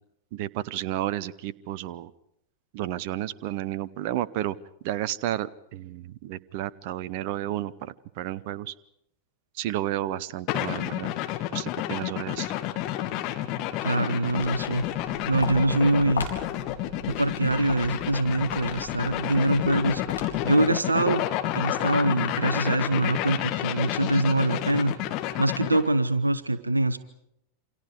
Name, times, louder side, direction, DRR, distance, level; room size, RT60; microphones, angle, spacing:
voice 1, 0.3-2.1 2.7-4.6 4.8-8.7 9.6-11.1 11.5-12.5, right 13 dB, 50° right, 19 dB, 0.8 m, -32 dB
sound 1, 10.5-25.9, left 13 dB, 40° left, 2.0 m, -30 dB
voice 2, 13.8-16.3 17.1-21.3 21.5-24.9 25.4-27.0, right 2 dB, 80° right, 14 dB, 0.9 m, -24 dB
Walk footsteps, 14.2-20.7, left 4 dB, 70° left, 4.4 m, -39 dB
28.5 x 26.5 x 4.9 m, 0.76 s
figure-of-eight pair, 90°, 0 cm